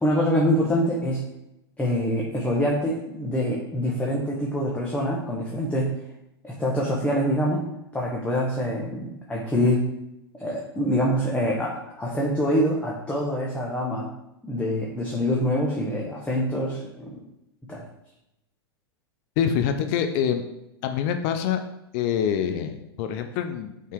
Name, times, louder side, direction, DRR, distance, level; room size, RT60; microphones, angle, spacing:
voice 1, 0.0-1.2 1.8-5.9 6.4-7.7 7.9-9.9 10.4-14.1 14.4-17.2 17.7-17.8, equal, 10° left, -3 dB, 1.2 m, -25 dB
voice 2, 19.4-20.4 20.8-21.6 21.9-23.9, left 8 dB, 50° left, 7 dB, 0.6 m, -25 dB
5.6 x 3.8 x 4.6 m, 0.86 s
figure-of-eight pair, 95°, 13 cm